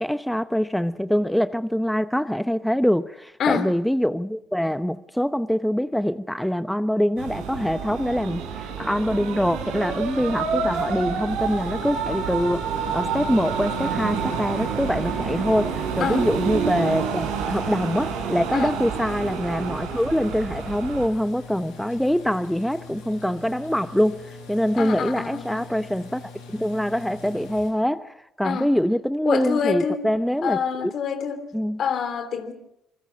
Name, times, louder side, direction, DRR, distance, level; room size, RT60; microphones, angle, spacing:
voice 1, 0.0-26.2 26.5-30.9 31.5-31.8, equal, 5° left, 0.9 m, -24 dB
sound 1, 7.2-21.1, right 6 dB, 85° right, 4.8 m, -28 dB
sound 2, 11.3-27.7, left 4 dB, 90° left, 6.8 m, -43 dB
voice 2, 24.8-25.7 28.4-28.7 29.2-30.0 30.4-31.5 31.8-32.5, left 7 dB, 60° left, 3.2 m, -26 dB
27.0 x 22.0 x 6.3 m
hypercardioid pair, 55°, 0 cm